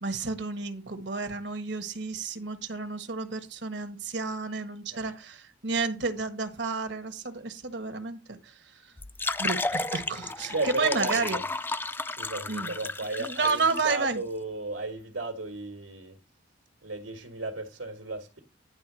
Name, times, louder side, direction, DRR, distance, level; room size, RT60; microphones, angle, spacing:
voice 1, 0.0-8.9 9.4-11.4 12.5-12.7 13.2-14.2, right 4 dB, 65° right, 1.3 m, -31 dB
sound 1, 9.0-13.9, left 3 dB, 10° left, 0.3 m, -33 dB
voice 2, 10.5-11.4 12.2-16.2 16.8-18.4, right 2 dB, 85° right, 1.8 m, -34 dB
10.5 x 3.7 x 6.2 m
head